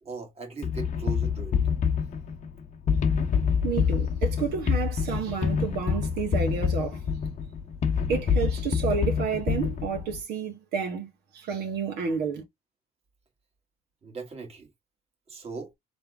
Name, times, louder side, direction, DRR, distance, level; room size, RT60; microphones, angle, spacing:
voice 1, 0.0-1.6 14.0-14.7 15.3-15.7, right 4 dB, 35° right, 1.8 m, -39 dB
sound 1, 0.6-10.2, left 6 dB, 50° left, 1.0 m, -26 dB
voice 2, 3.6-7.0 8.1-12.4, right 6 dB, 75° right, 1.6 m, -30 dB
3.7 x 3.4 x 3.4 m
cardioid pair, 110°, 17 cm